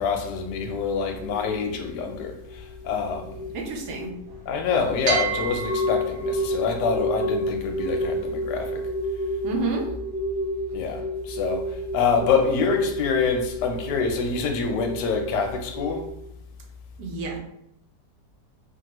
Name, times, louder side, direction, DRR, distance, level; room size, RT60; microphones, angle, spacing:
voice 1, 0.0-2.4 2.8-3.4 4.5-8.8 10.7-11.0 11.3-11.6 11.9-16.1, left 5 dB, 80° left, 1.1 m, -26 dB
sound 1, 1.2-4.5 5.1-16.1, equal, 70° right, 1.3 m, -30 dB
voice 2, 3.5-4.1 9.4-9.9 17.0-17.4, right 3 dB, 90° right, 1.3 m, -29 dB
3.1 x 2.2 x 2.9 m
omnidirectional pair, 1.8 m